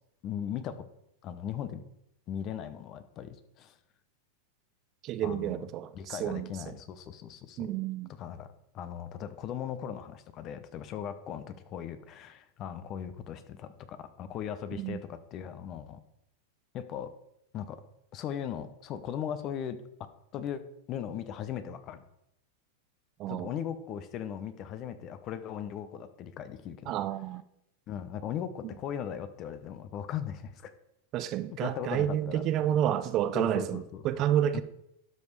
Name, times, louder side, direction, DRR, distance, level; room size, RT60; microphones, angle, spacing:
voice 1, 0.2-0.9 1.2-1.8 2.3-3.7 5.2-5.7 5.9-7.7 8.2-16.0 16.7-17.1 17.5-17.8 18.1-19.8 20.3-20.6 20.9-22.0 23.3-27.0 27.9-30.7 31.6-32.4 33.3-34.3 34.5-34.6, left 9 dB, 40° left, 0.9 m, -38 dB
voice 2, 5.0-6.8 7.6-8.1 14.7-15.0 23.2-23.5 26.9-27.4 31.1-34.6, right 11 dB, 40° right, 0.6 m, -30 dB
12.0 x 5.4 x 4.7 m
hypercardioid pair, 125°, 0 cm